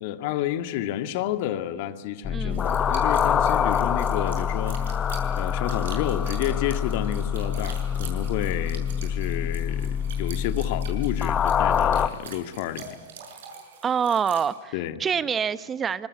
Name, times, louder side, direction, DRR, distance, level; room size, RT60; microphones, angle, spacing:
voice 1, 0.0-4.8 5.4-13.0 14.7-15.0, left 12 dB, 55° left, 11 dB, 1.9 m, -30 dB
sound 1, 2.2-12.1, left 8 dB, 25° left, 1.3 m, -25 dB
voice 2, 2.3-2.6 13.8-14.7 15.0-16.1, right 7 dB, 25° right, 16 dB, 0.9 m, -26 dB
sound 2, 2.5-14.5, right 6 dB, 75° right, 6.7 m, -44 dB
25.5 x 21.5 x 9.7 m, 1.3 s
hypercardioid pair, 110°, 0 cm